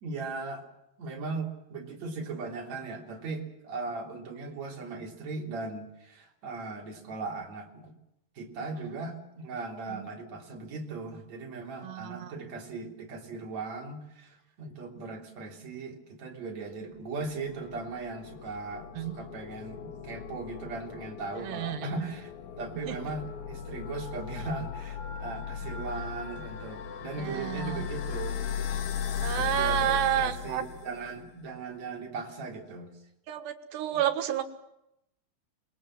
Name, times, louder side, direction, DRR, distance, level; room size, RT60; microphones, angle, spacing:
voice 1, 0.0-0.6 1.0-7.9 8.4-28.4 29.2-32.9, right 3 dB, 45° right, 2 dB, 4.3 m, -38 dB
voice 2, 11.8-12.3 19.0-19.1 21.4-22.1 22.7-23.0 27.2-27.9 29.2-30.6 33.3-34.4, right 11 dB, 80° right, 9 dB, 3.7 m, -30 dB
sound 1, 17.1-31.3, left 8 dB, 55° left, 2.5 m, -37 dB
27.0 x 22.0 x 7.5 m, 0.84 s
omnidirectional pair, 4.8 m